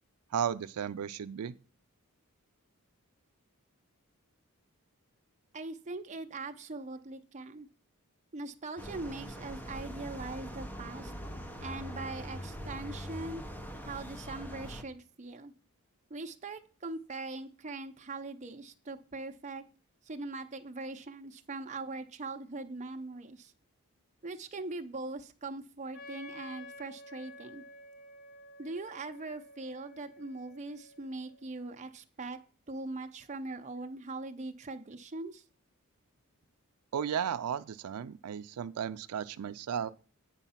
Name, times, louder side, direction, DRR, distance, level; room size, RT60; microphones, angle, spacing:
voice 1, 0.3-1.5 36.9-39.9, right 8 dB, 85° right, 0.4 m, -34 dB
voice 2, 5.5-7.7 8.3-11.1 11.6-13.4 13.8-15.5 16.1-19.6 20.0-23.5 24.2-27.6 28.6-32.4 32.7-35.4, right 3 dB, 30° right, 0.7 m, -41 dB
sound 1, 8.8-14.8, equal, 10° left, 0.6 m, -42 dB
Wind instrument woodwind instrument, 25.9-31.6, left 1 dB, 45° left, 0.9 m, -51 dB
9.0 x 4.6 x 5.7 m
head